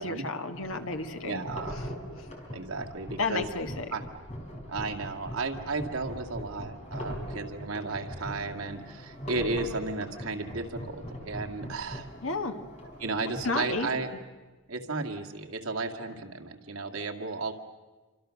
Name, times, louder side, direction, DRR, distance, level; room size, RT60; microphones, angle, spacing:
voice 1, 0.0-1.4 1.8-1.9 3.2-3.8 12.2-12.5 13.4-13.9, left 3 dB, 75° left, 6 dB, 1.8 m, -31 dB
sound 1, 0.5-14.0, equal, 30° left, 4.4 m, -41 dB
voice 2, 1.2-1.8 2.5-3.4 3.9-4.0 4.7-12.1 13.0-14.1 14.7-17.5, right 3 dB, 80° right, 3 dB, 2.2 m, -34 dB
28.5 x 25.0 x 6.5 m, 1.3 s
head